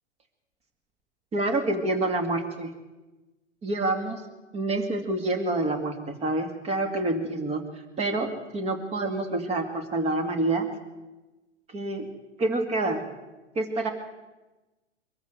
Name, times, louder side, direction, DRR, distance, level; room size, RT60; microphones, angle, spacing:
voice 1, 1.3-2.7 3.6-4.2 4.5-7.6 8.0-10.7 11.7-12.1 12.4-13.1 13.6-13.9, right 2 dB, 15° right, 6 dB, 2.4 m, -27 dB
24.0 x 14.0 x 7.9 m, 1.1 s
figure-of-eight pair, 110°, 36 cm